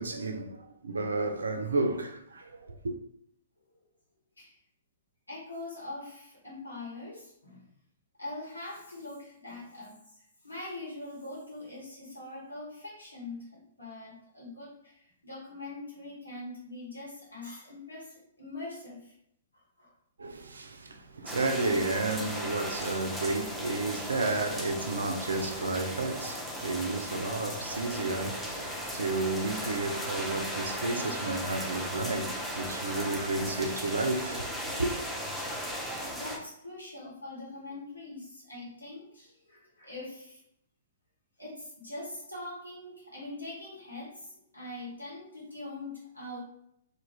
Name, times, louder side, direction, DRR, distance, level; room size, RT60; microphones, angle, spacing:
voice 1, 0.0-2.9 20.2-34.9, right 2 dB, 70° right, 0.3 m, -32 dB
voice 2, 5.3-7.6 8.2-19.1 19.8-19.9 20.9-21.0 26.2-26.3 26.8-27.1 35.8-40.4 41.4-46.4, left 2 dB, 85° left, 1.0 m, -43 dB
sound 1, 21.3-36.4, equal, ahead, 0.5 m, -37 dB
2.4 x 2.1 x 3.1 m
figure-of-eight pair, 115°, 0 cm